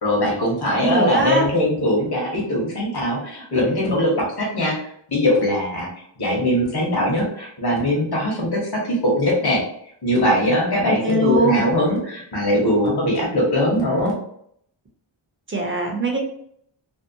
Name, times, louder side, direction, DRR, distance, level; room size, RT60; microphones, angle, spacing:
voice 1, 0.0-4.8 5.1-5.9 6.2-9.6 10.0-14.1, left 1 dB, 55° left, -3 dB, 1.1 m, -21 dB
voice 2, 0.8-1.4 10.8-11.7 15.5-16.2, right 2 dB, 25° right, 0 dB, 0.7 m, -21 dB
2.7 x 2.0 x 2.6 m, 0.67 s
wide cardioid pair, 90°, 46 cm